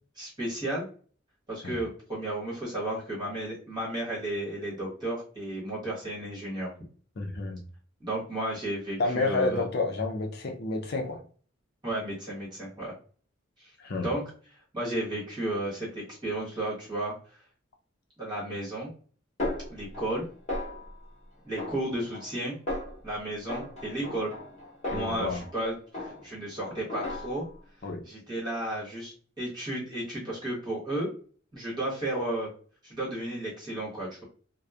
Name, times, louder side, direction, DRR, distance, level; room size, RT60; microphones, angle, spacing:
voice 1, 0.1-0.9 1.5-6.7 8.0-9.6 11.8-12.9 13.6-14.2 14.7-17.2 18.2-18.9 19.7-20.3 21.4-22.6 23.0-24.3 24.9-27.5 28.0-31.1 31.5-32.5 32.8-34.2, right 1 dB, 20° right, 1.1 m, -33 dB
voice 2, 7.2-7.6 9.0-11.2 13.8-14.1 24.9-25.4 27.8-28.0, left 3 dB, 55° left, 0.5 m, -30 dB
Snare drum, 19.4-20.2 20.5-21.1 21.6-22.4 22.7-23.1 23.5-25.6 25.9-26.5 26.9-27.6, left 1 dB, 35° left, 1.0 m, -36 dB
2.9 x 2.0 x 2.3 m
head